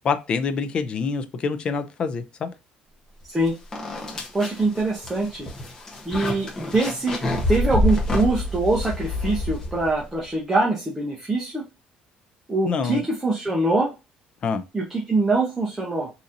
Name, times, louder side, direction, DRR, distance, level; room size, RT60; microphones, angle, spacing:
voice 1, 0.0-2.5 12.6-13.0 14.4-14.6, left 5 dB, 35° left, 0.5 m, -26 dB
sound 1, 3.2-3.3 3.7-10.1, left 1 dB, 20° left, 0.9 m, -27 dB
voice 2, 4.3-5.5 6.0-7.2 7.5-11.6 12.5-13.9 14.7-16.1, right 2 dB, 10° right, 0.8 m, -23 dB
3.9 x 2.8 x 2.5 m
cardioid pair, 150°, 3 cm